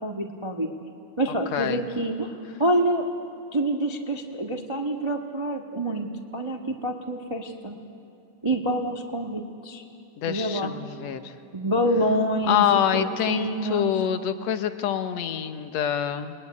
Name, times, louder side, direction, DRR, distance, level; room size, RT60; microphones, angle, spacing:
voice 1, 0.0-0.7 1.2-2.3 2.6-3.1 3.5-7.8 8.4-9.8 10.3-10.7 11.5-14.0, right 1 dB, 30° right, 2 dB, 0.5 m, -27 dB
voice 2, 10.2-11.3 12.5-16.3, left 9 dB, 65° left, 9 dB, 2.2 m, -26 dB
28.5 x 21.5 x 9.7 m, 2.6 s
omnidirectional pair, 3.4 m